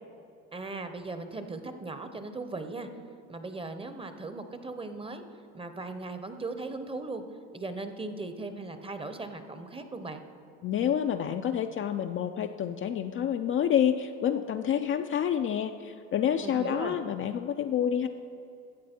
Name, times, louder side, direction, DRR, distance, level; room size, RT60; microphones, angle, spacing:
voice 1, 0.5-2.9 3.3-5.2 5.5-7.2 7.5-10.2 16.4-17.0, right 3 dB, 15° right, 8 dB, 0.8 m, -38 dB
voice 2, 10.6-18.1, left 9 dB, 35° left, 6 dB, 0.4 m, -28 dB
14.5 x 7.5 x 4.4 m, 2.6 s
supercardioid pair, 90°, 36 cm